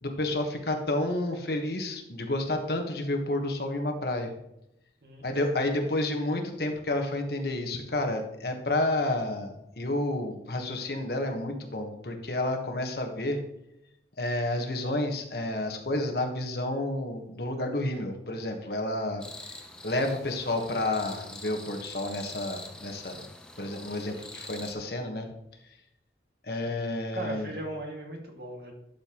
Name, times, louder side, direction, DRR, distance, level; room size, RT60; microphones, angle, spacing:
voice 1, 0.0-4.3 5.2-13.4 14.2-19.2 19.8-23.3 23.6-25.3 26.4-27.5, left 1 dB, 60° left, 4 dB, 1.3 m, -30 dB
voice 2, 5.5-6.1 26.6-26.9 27.1-28.7, right 1 dB, 60° right, 0 dB, 2.0 m, -39 dB
sound 1, 19.2-24.7, left 1 dB, 5° left, 0.7 m, -45 dB
12.0 x 6.8 x 3.0 m, 0.83 s
head